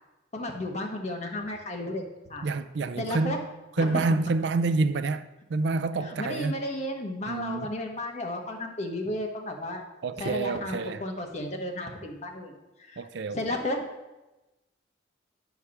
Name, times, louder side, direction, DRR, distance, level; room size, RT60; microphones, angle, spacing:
voice 1, 0.3-2.5 2.9-3.4 3.8-4.0 6.0-9.8 10.2-13.9, left 1 dB, 35° left, 1.2 m, -33 dB
voice 2, 2.4-3.4 3.8-6.5 7.3-7.7 10.0-11.0 13.0-13.4, right 3 dB, 65° right, 0.4 m, -28 dB
9.8 x 4.7 x 5.7 m
head